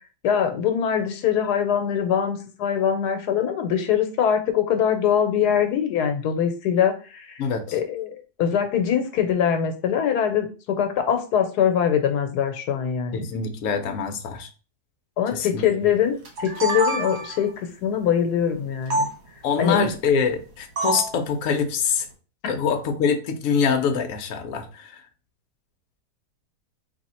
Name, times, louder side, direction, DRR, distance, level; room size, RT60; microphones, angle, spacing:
voice 1, 0.2-7.4 7.7-13.3 15.2-19.1 19.6-19.9 22.4-22.5, left 8 dB, 85° left, 6 dB, 1.2 m, -23 dB
voice 2, 7.4-7.8 13.1-14.5 15.3-15.6 19.4-22.1 22.5-25.0, left 6 dB, 65° left, 6 dB, 1.0 m, -24 dB
sound 1, 16.2-17.5 18.9-19.1 20.8-21.2, right 2 dB, 65° right, 1.7 m, -25 dB
3.5 x 2.7 x 4.2 m, 0.36 s
omnidirectional pair, 1.7 m